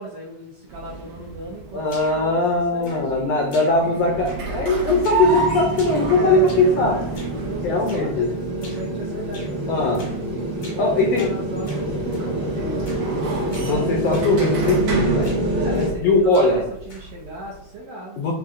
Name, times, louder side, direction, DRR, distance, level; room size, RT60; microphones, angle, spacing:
voice 1, 0.0-2.4 2.7-3.6 6.1-7.1 7.4-10.2 10.5-13.0 15.5-18.2, right 1 dB, 85° right, -3 dB, 1.2 m, -36 dB
sound 1, 0.7-17.7, right 4 dB, 65° right, 1.3 m, -31 dB
voice 2, 1.7-7.0 7.6-8.3 9.7-10.1 10.8-11.3 13.6-15.3 16.0-16.6 18.2-18.3, left 2 dB, 85° left, 1 dB, 1.4 m, -20 dB
sound 2, 1.9-2.3 2.8-3.2 3.5-4.0 4.3-4.6 5.0-5.3 5.7-6.8 7.1-7.4 7.9-8.1 8.6-8.9 9.3-9.6 9.9-10.2 10.6-10.9 11.2-12.3 12.8-13.1 13.5-13.7 14.1-14.3 14.6-14.9 15.2-16.0 16.3-17.2, left 2 dB, 55° left, 0.8 m, -44 dB
sound 3, 5.2-15.9, right 1 dB, 50° right, 1.2 m, -27 dB
7.0 x 2.7 x 2.5 m, 0.73 s
omnidirectional pair, 3.5 m